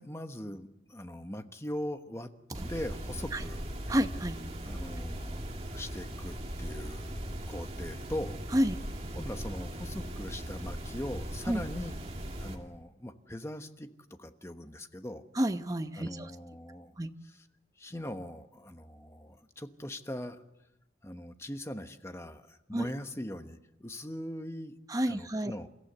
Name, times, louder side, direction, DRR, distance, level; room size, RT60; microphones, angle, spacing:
voice 1, 0.0-2.3 2.7-3.6 4.6-7.1 7.5-8.4 9.1-11.9 12.4-13.9 14.2-15.2 16.0-16.9 17.2-17.4 17.8-20.4 21.0-24.7 25.0-25.7, left 1 dB, 15° left, 8 dB, 1.1 m, -41 dB
sound 1, 2.5-12.6, equal, 35° right, 2.4 m, -39 dB
voice 2, 3.9-4.4 8.5-8.8 11.5-11.6 15.4-16.3 17.0-17.1 22.7-22.9 24.9-25.5, equal, 20° right, 9 dB, 0.8 m, -29 dB
29.0 x 15.0 x 8.0 m, 0.94 s
head